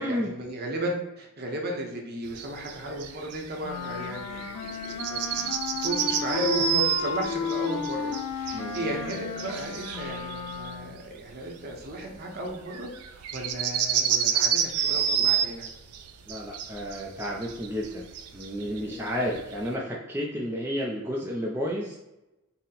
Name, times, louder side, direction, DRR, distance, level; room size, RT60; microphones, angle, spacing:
voice 1, 0.0-5.5 5.8-15.6 18.6-19.2, right 1 dB, 45° right, 1 dB, 0.7 m, -35 dB
sound 1, 2.2-19.7, right 8 dB, 90° right, 0.4 m, -30 dB
Wind instrument woodwind instrument, 3.6-11.0, left 5 dB, 85° left, 0.5 m, -33 dB
voice 2, 8.5-9.0 16.3-18.1 18.3-22.0, equal, 10° right, -3 dB, 0.4 m, -31 dB
4.1 x 2.1 x 3.8 m, 0.96 s
head